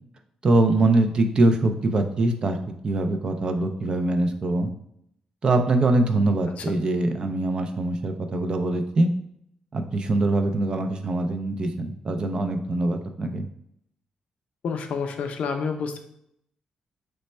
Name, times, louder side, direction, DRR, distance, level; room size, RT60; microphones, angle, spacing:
voice 1, 0.4-2.6 2.8-4.7 5.4-9.1 9.7-13.5, right 2 dB, 40° right, 6 dB, 0.3 m, -23 dB
voice 2, 14.6-16.0, left 5 dB, 70° left, 5 dB, 0.4 m, -29 dB
3.2 x 2.1 x 4.1 m, 0.72 s
wide cardioid pair, 140°, 2 cm